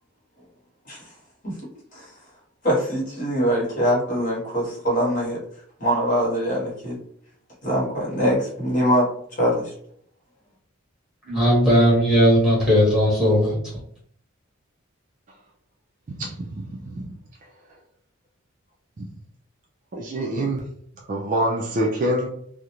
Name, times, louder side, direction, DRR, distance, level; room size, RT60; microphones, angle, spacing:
voice 1, 2.6-5.4 5.8-7.0 7.6-9.1 9.4-9.7, equal, 35° left, -5 dB, 1.0 m, -23 dB
voice 2, 11.3-13.6, equal, 5° right, -6 dB, 1.0 m, -17 dB
voice 3, 16.2-17.1 19.9-20.6 21.1-22.3, right 1 dB, 35° right, -1 dB, 0.3 m, -25 dB
2.4 x 2.0 x 2.8 m, 0.64 s
head